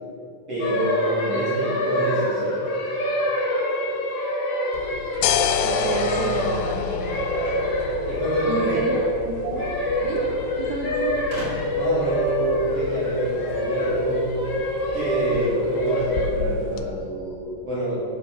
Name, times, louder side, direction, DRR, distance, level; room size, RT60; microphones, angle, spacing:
voice 1, 0.5-2.6 8.1-8.8 11.8-14.5 14.9-18.0, right 1 dB, 40° right, -9 dB, 2.7 m, -26 dB
sound 1, 0.6-16.3, equal, 70° left, 1.4 m, -26 dB
sound 2, 4.7-16.9, left 8 dB, 85° left, 3.2 m, -31 dB
voice 2, 5.6-7.3 8.5-9.0 9.3-9.7 10.0-11.2, right 5 dB, 80° right, 0 dB, 3.0 m, -30 dB
sound 3, 7.4-8.8 9.9-10.0 10.2-10.3 11.3-11.9, equal, 60° right, 0.7 m, -37 dB
9.4 x 6.1 x 6.0 m, 2.6 s
omnidirectional pair, 5.8 m